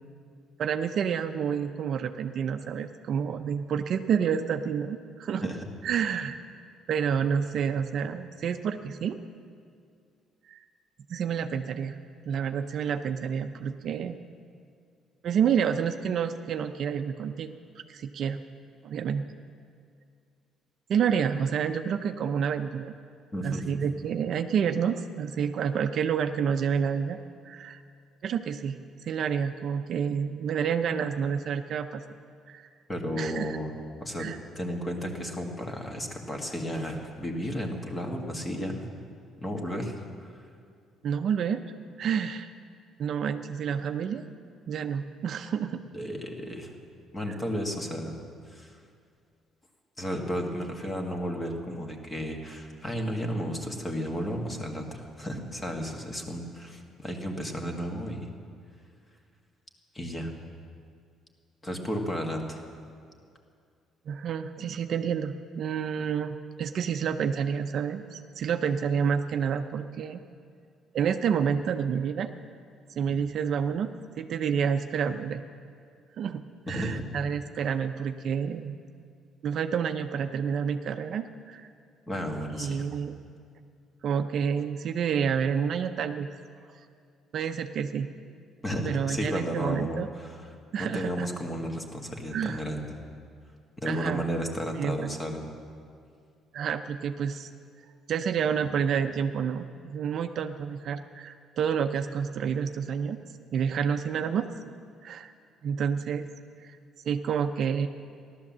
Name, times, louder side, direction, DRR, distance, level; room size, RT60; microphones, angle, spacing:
voice 1, 0.6-5.5 5.8-6.4 6.9-9.2 10.5-10.6 11.1-12.0 12.3-14.2 15.2-18.4 18.8-19.2 20.9-22.9 23.4-27.2 27.4-27.8 28.2-32.0 32.5-32.7 33.2-33.5 34.2-34.4 41.0-41.6 42.0-42.5 43.0-44.2 44.7-45.8 64.1-70.2 70.9-72.3 73.0-73.9 74.2-75.4 76.2-76.4 76.7-78.8 79.4-81.7 82.5-83.2 84.0-86.3 87.3-88.1 88.8-90.1 90.7-91.3 92.3-92.6 93.9-94.2 94.8-95.1 96.5-97.5 98.1-103.2 103.5-104.5 105.0-105.3 105.6-106.3 106.6-106.8 107.1-107.9, right 7 dB, 50° right, 8 dB, 0.6 m, -29 dB
voice 2, 23.3-23.7 32.9-34.3 34.6-38.9 39.4-40.4 45.9-46.7 47.1-48.2 48.5-48.8 50.0-58.3 59.9-60.3 61.6-62.6 73.1-73.2 76.7-77.1 82.1-82.9 88.6-92.9 93.8-95.5, equal, 15° left, 3 dB, 1.8 m, -33 dB
15.5 x 12.0 x 7.4 m, 2.3 s
cardioid pair, 140°, 0 cm